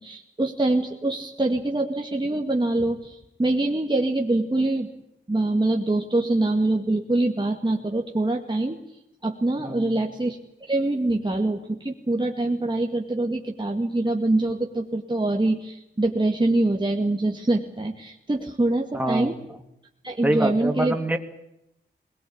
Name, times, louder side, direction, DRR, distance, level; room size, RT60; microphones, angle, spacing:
voice 1, 0.0-4.9 5.3-8.8 9.2-10.4 10.7-19.3 20.0-21.0, right 2 dB, 25° right, 1 dB, 2.1 m, -24 dB
voice 2, 9.6-10.0 18.9-19.3 20.2-21.2, right 1 dB, 10° right, 6 dB, 2.6 m, -25 dB
21.0 x 20.0 x 8.7 m, 0.85 s
wide cardioid pair, 75°, 20 cm